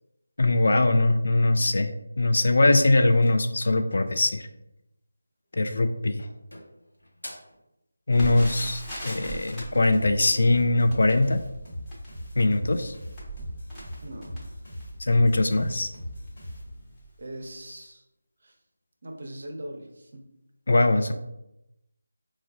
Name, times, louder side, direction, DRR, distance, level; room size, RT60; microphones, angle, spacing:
voice 1, 0.4-4.5 5.5-6.3 8.1-11.4 12.4-13.0 15.1-15.9 20.7-21.1, left 2 dB, 60° left, 7 dB, 0.3 m, -21 dB
sound 1, 3.0-4.2 5.4-5.8 6.2-7.6, equal, 85° left, 0.8 m, -47 dB
Crackle, 8.1-15.1 15.7-15.8 16.1-16.3 16.9-17.2 17.4-17.5, right 2 dB, 10° left, 0.7 m, -40 dB
sound 2, 9.9-17.1, equal, 40° left, 1.3 m, -40 dB
voice 2, 14.0-14.5 17.2-18.1 18.4-18.6 19.0-20.3, right 1 dB, 55° right, 3 dB, 0.5 m, -40 dB
4.4 x 2.1 x 2.3 m, 0.90 s
figure-of-eight pair, 160°, 0 cm